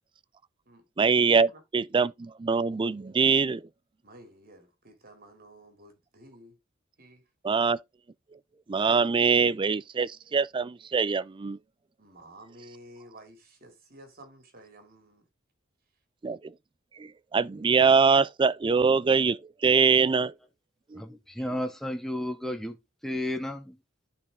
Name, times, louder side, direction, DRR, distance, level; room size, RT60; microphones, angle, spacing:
voice 1, 1.0-3.6 7.4-7.8 8.7-11.6 16.2-16.5 17.0-20.3 20.9-21.0, right 5 dB, 25° right, 0.4 m, -23 dB
voice 2, 4.0-6.6 7.0-7.2 12.0-15.3, right 1 dB, 50° right, 2.9 m, -52 dB
voice 3, 21.0-22.8 23.0-23.8, left 1 dB, ahead, 0.8 m, -32 dB
10.5 x 4.4 x 3.6 m
head